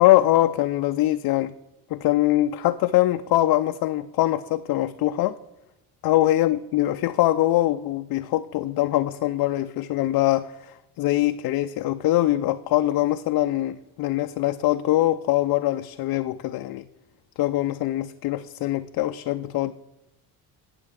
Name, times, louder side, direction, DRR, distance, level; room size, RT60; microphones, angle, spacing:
voice 1, 0.0-1.5 1.9-5.4 6.0-16.9 17.4-19.7, left 15 dB, 55° left, 9 dB, 0.5 m, -23 dB
17.0 x 6.8 x 3.6 m, 0.91 s
supercardioid pair, 85°, 42 cm